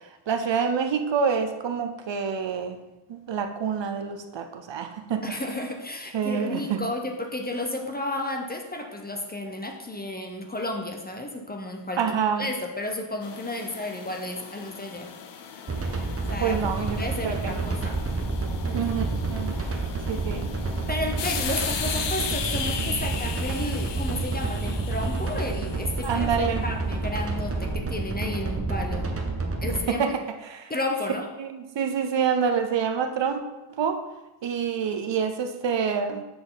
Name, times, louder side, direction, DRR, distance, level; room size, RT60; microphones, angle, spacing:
voice 1, 0.3-2.8 3.1-5.2 6.1-6.8 12.0-12.5 16.4-17.7 18.7-19.0 19.3-19.6 20.1-20.5 26.0-26.6 29.6-30.7 31.4-33.4 33.8-34.0 34.4-36.2, right 6 dB, 65° right, 7 dB, 0.7 m, -27 dB
voice 2, 5.2-12.0 12.4-15.1 16.3-16.6 17.0-17.9 18.7-18.8 20.9-29.1 29.6-30.0 30.7-31.3, left 1 dB, 20° left, 3 dB, 0.7 m, -32 dB
sound 1, 13.2-27.7, left 7 dB, 60° left, 0.7 m, -37 dB
sound 2, 15.7-29.8, right 3 dB, 30° right, 0.8 m, -29 dB
6.8 x 6.2 x 3.9 m, 1.0 s
wide cardioid pair, 145°, 48 cm